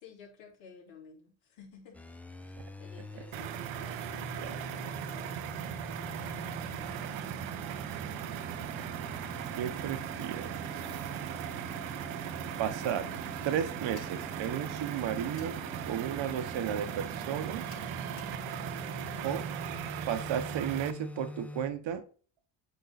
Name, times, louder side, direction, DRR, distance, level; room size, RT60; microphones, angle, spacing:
voice 1, 0.0-2.0 2.8-5.4, left 6 dB, 70° left, -1 dB, 3.2 m, -53 dB
sound 1, 1.9-21.7, left 1 dB, 5° left, 0.6 m, -44 dB
sound 2, 3.3-20.9, right 13 dB, 85° right, 0.8 m, -39 dB
voice 2, 9.5-10.8 12.6-13.1 13.4-17.6 19.2-19.4 20.1-22.0, right 9 dB, 70° right, 9 dB, 1.1 m, -34 dB
sound 3, 13.9-14.2 15.3-15.6 17.7-18.4, left 4 dB, 40° left, 3.0 m, -54 dB
8.3 x 3.8 x 4.1 m, 0.40 s
cardioid pair, 90°, 47 cm